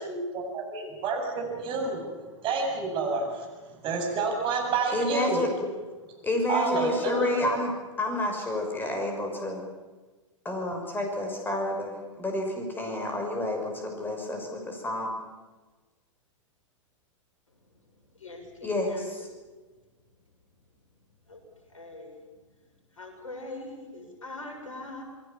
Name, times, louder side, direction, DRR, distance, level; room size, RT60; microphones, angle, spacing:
voice 1, 0.0-2.0 2.4-3.5 3.8-5.4 6.5-7.5, right 4 dB, 30° right, 1 dB, 8.0 m, -29 dB
voice 2, 4.9-5.5 6.2-7.7 8.0-9.6 10.4-15.2 18.6-19.3, left 1 dB, 10° left, 3 dB, 6.4 m, -29 dB
voice 3, 18.2-19.2 21.3-21.4 21.7-22.2 23.0-25.0, left 2 dB, 75° left, 2 dB, 6.9 m, -41 dB
28.0 x 21.5 x 7.3 m, 1.3 s
figure-of-eight pair, 100°, 17 cm